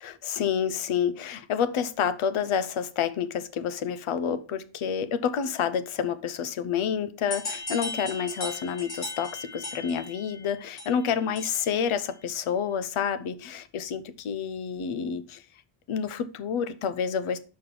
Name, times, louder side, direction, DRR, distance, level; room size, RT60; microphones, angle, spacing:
voice 1, 0.0-15.4 15.9-17.4, left 7 dB, 80° left, 0.9 m, -29 dB
sound 1, 7.3-11.8, left 2 dB, 50° left, 3.4 m, -37 dB
5.7 x 5.3 x 5.9 m
wide cardioid pair, 150°, 48 cm